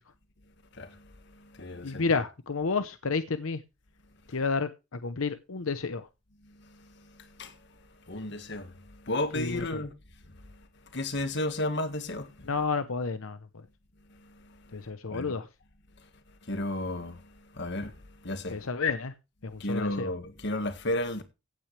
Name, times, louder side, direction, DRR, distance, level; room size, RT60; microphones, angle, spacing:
voice 1, 0.7-2.0 6.4-9.9 10.3-12.5 14.1-15.3 16.0-16.1 16.4-18.7 19.5-21.2, left 1 dB, 60° left, 1.7 m, -35 dB
voice 2, 1.8-3.6 4.3-6.1 9.3-9.8 12.5-13.7 14.7-15.5 18.5-19.1 19.4-20.1, left 4 dB, 90° left, 0.8 m, -31 dB
16.0 x 9.0 x 3.3 m
head